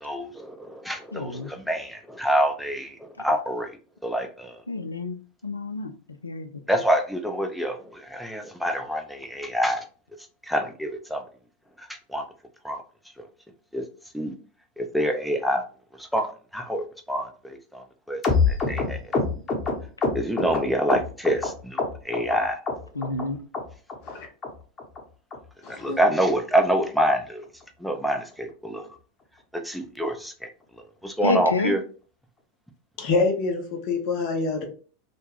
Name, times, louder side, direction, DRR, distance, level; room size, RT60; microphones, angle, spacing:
voice 1, 0.0-3.7 4.0-4.6 6.7-9.8 10.4-11.2 11.8-12.2 12.6-12.8 13.2-13.3 13.7-13.8 14.1-14.3 14.8-15.6 16.0-18.2 18.5-19.0 20.1-22.6 25.7-27.4 27.8-28.9 29.5-30.5 31.0-31.8, equal, ahead, 0.5 m, -26 dB
voice 2, 1.1-1.5 4.7-5.2 5.4-5.9 6.2-6.6 22.9-23.4 31.2-31.7, left 3 dB, 80° left, 0.3 m, -28 dB
sound 1, 18.2-21.5 21.8-22.4 22.7-23.2 23.5-23.6 23.9-24.1 24.4-24.5 24.8-25.0 25.3-25.4 25.7-25.9 26.2-26.3 26.5-26.7 27.1-27.2 27.4-27.6 28.0-28.1, left 4 dB, 25° left, 1.0 m, -25 dB
voice 3, 25.6-26.0 33.0-34.7, left 3 dB, 45° left, 0.7 m, -26 dB
2.4 x 2.1 x 3.2 m
figure-of-eight pair, 85°, 0 cm